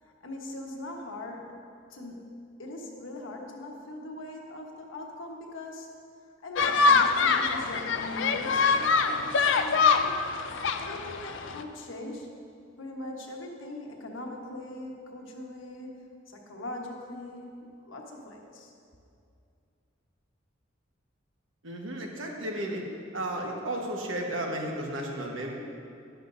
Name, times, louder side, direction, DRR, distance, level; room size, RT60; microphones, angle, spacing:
voice 1, 0.0-1.6 1.9-5.9 6.4-10.2 10.8-12.3 12.8-18.7, left 1 dB, 85° left, 0 dB, 1.3 m, -41 dB
sound 1, 6.6-11.6, left 4 dB, 65° left, 0.5 m, -24 dB
voice 2, 21.6-22.9 23.1-25.5, right 1 dB, 75° right, 0 dB, 1.3 m, -33 dB
11.0 x 11.0 x 2.7 m, 2.4 s
head